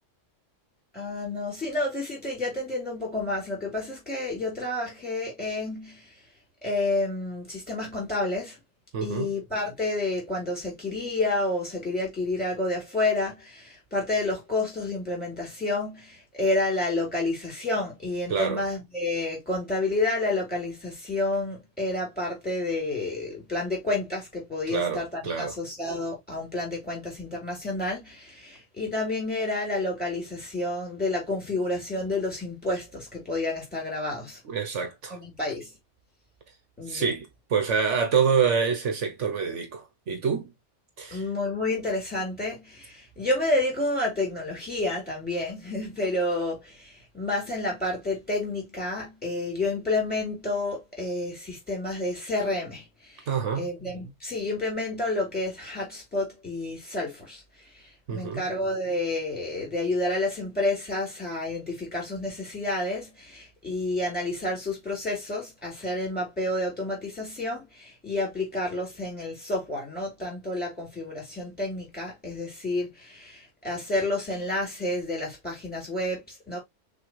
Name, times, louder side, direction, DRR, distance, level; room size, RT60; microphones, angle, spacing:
voice 1, 0.9-6.1 6.6-8.6 9.0-34.4 35.1-35.7 36.8-37.1 41.1-53.3 53.6-76.6, left 2 dB, 5° left, 3.5 m, -30 dB
voice 2, 8.9-9.3 18.3-18.6 24.7-25.6 34.5-35.2 36.9-40.5 41.0-41.2 53.3-53.7 58.1-58.4, right 6 dB, 75° right, 1.3 m, -27 dB
6.2 x 2.8 x 3.0 m
omnidirectional pair, 1.3 m